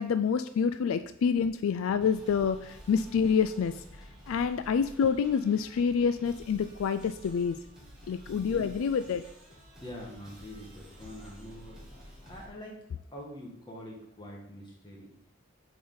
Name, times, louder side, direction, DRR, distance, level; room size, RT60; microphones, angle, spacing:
voice 1, 0.0-3.8 4.3-7.6 8.1-9.2, left 6 dB, 75° left, 12 dB, 0.3 m, -27 dB
sound 1, 2.0-12.5, equal, 5° right, 2.2 m, -50 dB
voice 2, 9.8-12.8 13.1-15.1, equal, 20° left, -2 dB, 1.7 m, -45 dB
8.0 x 5.0 x 3.9 m, 0.76 s
head